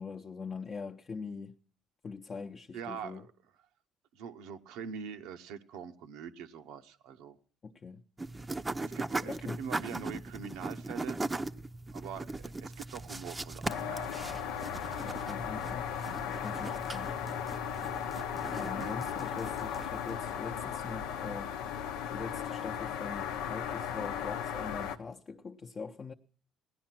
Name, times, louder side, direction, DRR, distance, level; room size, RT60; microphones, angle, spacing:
voice 1, 0.0-1.6 2.0-3.2 7.6-8.0 9.2-9.6 15.0-17.2 18.5-21.5 22.1-26.1, left 5 dB, 35° left, 0.7 m, -42 dB
voice 2, 2.7-3.3 4.1-7.4 8.8-11.2 11.9-14.2 15.4-15.5 18.7-18.9, right 7 dB, 85° right, 0.8 m, -43 dB
sound 1, 8.2-20.1, right 2 dB, 20° right, 0.6 m, -39 dB
sound 2, 13.7-25.0, left 8 dB, 90° left, 0.8 m, -36 dB
16.0 x 10.5 x 5.9 m
supercardioid pair, 90°, 0 cm